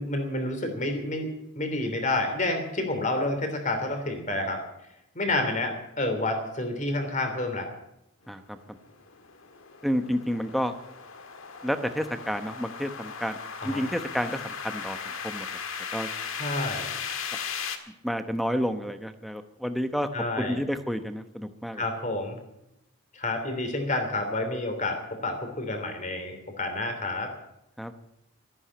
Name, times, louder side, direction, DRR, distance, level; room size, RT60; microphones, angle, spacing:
voice 1, 0.0-4.6 5.1-7.7 13.6-13.8 16.4-16.9 20.1-20.6 21.7-22.4 23.1-27.3, left 2 dB, 35° left, 6 dB, 3.1 m, -29 dB
voice 2, 8.3-8.6 9.8-10.7 11.6-15.0 15.2-15.5 15.9-16.1 18.0-20.1 20.4-21.8 27.8-27.9, equal, ahead, 9 dB, 0.9 m, -30 dB
sound 1, 8.7-17.8, left 6 dB, 70° left, 1.7 m, -37 dB
13.5 x 11.0 x 8.7 m, 0.84 s
head